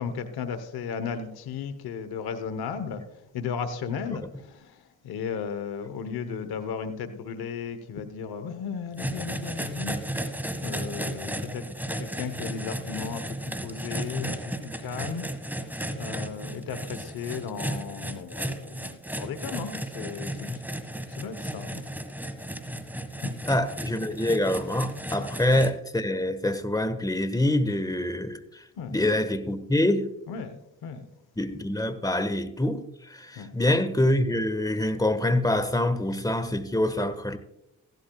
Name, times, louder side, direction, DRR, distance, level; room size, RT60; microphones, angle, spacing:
voice 1, 0.0-11.6 12.0-20.6 21.1-21.9 23.2-23.3 25.2-25.3 28.8-29.2 30.3-31.1 33.4-33.6, left 6 dB, 90° left, 1.0 m, -35 dB
sound 1, 9.0-25.7, right 1 dB, 5° right, 1.5 m, -34 dB
voice 2, 23.5-28.4 28.9-30.1 31.4-32.8 33.1-37.4, left 1 dB, 10° left, 1.3 m, -25 dB
15.5 x 12.0 x 2.3 m
supercardioid pair, 45°, 36 cm